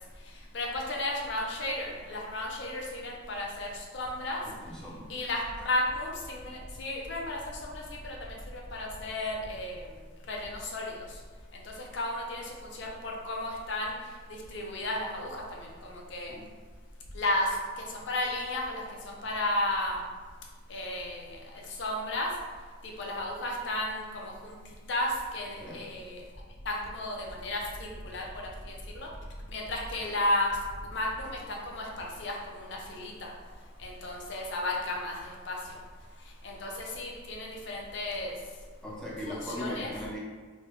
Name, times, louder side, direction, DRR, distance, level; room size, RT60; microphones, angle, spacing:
voice 1, 0.5-4.4 5.1-9.8 10.3-11.0 11.5-14.0 14.3-16.3 17.1-20.0 20.7-22.3 22.8-24.5 24.9-26.2 26.6-28.2 28.6-29.1 29.5-30.5 30.9-33.3 33.8-35.6 36.4-38.3 39.2-39.9, left 1 dB, 60° left, -1 dB, 0.6 m, -33 dB
voice 2, 4.4-5.0 16.3-16.4 25.6-25.9 38.8-40.2, equal, 5° left, -6 dB, 0.5 m, -38 dB
3.3 x 2.3 x 3.0 m, 1.5 s
head